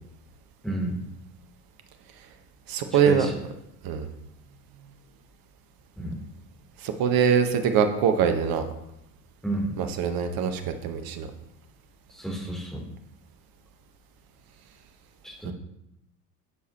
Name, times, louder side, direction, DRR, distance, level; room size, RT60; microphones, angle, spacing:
voice 1, 0.6-1.0 3.0-3.3 6.0-6.2 9.4-9.7 12.1-12.8 15.2-15.5, right 1 dB, ahead, -2 dB, 3.4 m, -30 dB
voice 2, 2.7-3.3 3.8-4.1 6.8-8.6 9.8-11.3 15.4-15.5, right 7 dB, 45° right, 7 dB, 1.3 m, -23 dB
11.0 x 7.2 x 3.0 m, 0.82 s
hypercardioid pair, 70°, 48 cm